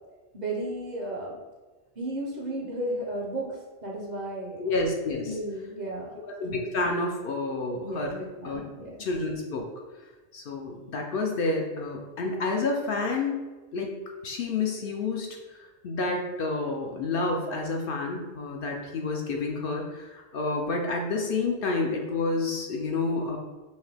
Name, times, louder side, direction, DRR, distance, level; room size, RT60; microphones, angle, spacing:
voice 1, 0.3-1.4 2.0-4.6 5.2-6.1 7.8-9.0, right 1 dB, 45° right, -3 dB, 0.7 m, -34 dB
voice 2, 4.6-5.4 6.4-8.2 8.4-8.6 9.0-9.7 10.3-13.4 13.7-13.9 14.2-15.4 15.8-23.4, left 3 dB, 65° left, 1 dB, 0.7 m, -29 dB
5.4 x 2.2 x 3.3 m, 1.2 s
omnidirectional pair, 1.1 m